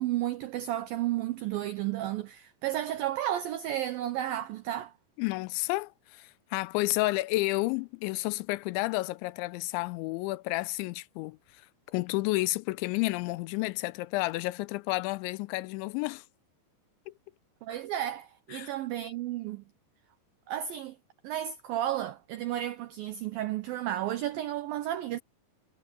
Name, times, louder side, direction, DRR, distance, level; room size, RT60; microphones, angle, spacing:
voice 1, 0.0-4.9 17.6-19.6 20.5-21.0 21.2-25.2, right 12 dB, 90° right, 2.0 m, -32 dB
voice 2, 5.2-11.4 11.9-16.2 17.1-17.2 18.5-18.7, left 21 dB, 85° left, 3.0 m, -31 dB
omnidirectional pair, 5.2 m